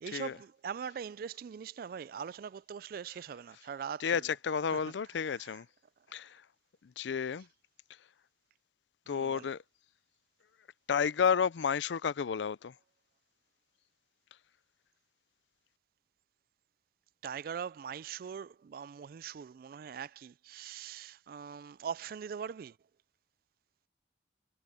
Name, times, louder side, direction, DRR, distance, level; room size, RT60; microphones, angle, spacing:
voice 1, 0.0-4.2 4.7-4.8 5.4-5.5 9.1-9.5 17.2-22.8, right 7 dB, 55° right, 0.3 m, -42 dB
voice 2, 4.0-5.7 6.1-6.4 6.8-7.5 9.1-9.6 10.9-12.7, left 6 dB, 85° left, 0.4 m, -31 dB
head